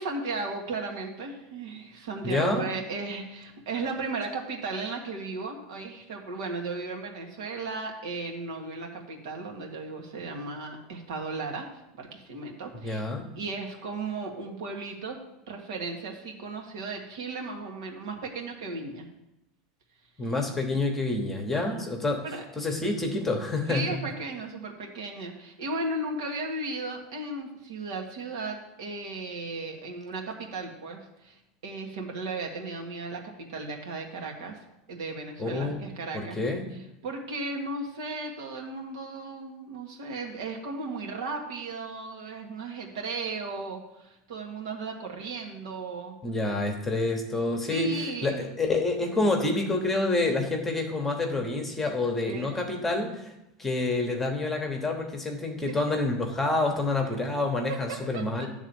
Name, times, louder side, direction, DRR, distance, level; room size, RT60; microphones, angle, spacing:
voice 1, 0.0-13.0 13.3-19.1 20.2-20.3 21.5-21.8 22.2-22.4 23.7-34.6 34.9-36.4 37.0-46.1 47.7-48.5 52.3-52.5 52.8-53.0 55.7-55.8 57.9-58.5, right 3 dB, 85° right, 1 dB, 1.7 m, -35 dB
voice 2, 2.2-2.6 12.8-13.3 20.2-22.2 22.6-23.9 35.4-35.8 36.1-36.7 46.2-53.3 53.6-58.5, left 2 dB, 10° left, 3 dB, 1.0 m, -28 dB
10.5 x 3.6 x 7.0 m, 0.90 s
supercardioid pair, 160°, 2 cm